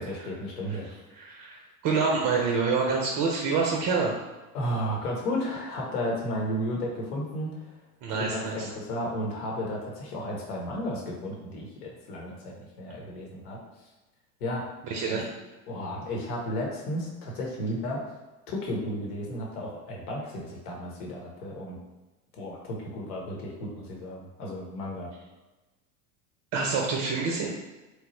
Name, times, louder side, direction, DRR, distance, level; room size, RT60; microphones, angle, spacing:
voice 1, 0.0-1.0 4.5-7.7 8.1-13.6 14.4-14.6 15.0-15.2 15.7-18.0 18.5-21.8 22.4-25.1, equal, 75° left, -2 dB, 1.0 m, -33 dB
voice 2, 1.1-4.1 8.0-8.7 14.8-15.3 26.5-27.5, right 4 dB, 35° right, 0 dB, 0.5 m, -27 dB
3.0 x 2.0 x 3.0 m, 1.1 s
hypercardioid pair, 85°, 46 cm